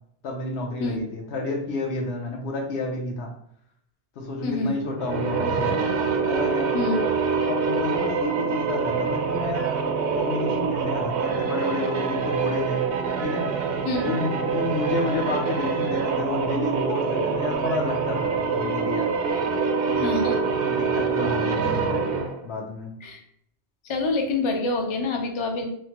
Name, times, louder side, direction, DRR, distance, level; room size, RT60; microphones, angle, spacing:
voice 1, 0.2-3.3 4.2-5.9 6.3-6.7 7.0-9.7 10.1-12.8 13.2-13.5 14.0-19.1 19.8-20.1 20.6-22.0 22.4-22.9, left 2 dB, 75° left, 1 dB, 1.0 m, -30 dB
voice 2, 4.4-4.8 6.7-7.0 13.8-14.1 20.0-20.4 23.0-23.2 23.8-25.6, left 3 dB, 55° left, 3 dB, 0.3 m, -26 dB
sound 1, 4.9-22.4, right 5 dB, 65° right, 0.7 m, -25 dB
3.1 x 2.1 x 2.9 m, 0.70 s
omnidirectional pair, 1.1 m